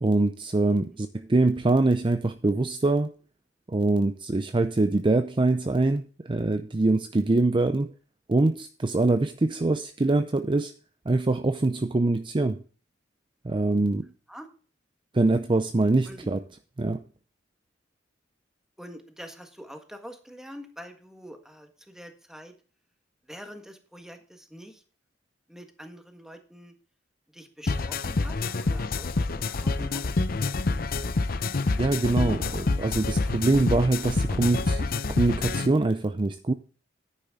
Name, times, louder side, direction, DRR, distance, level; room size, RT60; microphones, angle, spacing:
voice 1, 0.0-3.1 3.7-7.9 8.3-10.7 11.1-12.6 13.4-14.1 15.1-16.4 16.8-17.0 31.8-36.5, right 2 dB, 25° right, 0.5 m, -24 dB
voice 2, 18.8-22.5 23.3-24.8 25.5-26.7 27.3-30.0, equal, 5° right, 1.6 m, -45 dB
sound 1, 27.7-35.7, left 3 dB, 55° left, 0.7 m, -27 dB
10.0 x 9.7 x 3.7 m
head